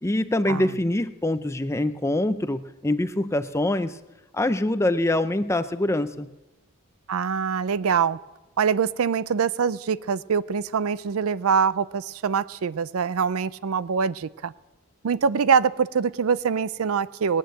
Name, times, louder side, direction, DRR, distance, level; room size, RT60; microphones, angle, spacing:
voice 1, 0.0-4.0 4.3-6.3, left 1 dB, 10° left, 12 dB, 0.5 m, -24 dB
voice 2, 7.1-8.2 8.6-14.5 15.0-17.4, right 6 dB, 70° right, 18 dB, 0.4 m, -24 dB
19.5 x 9.0 x 7.7 m, 1.1 s
head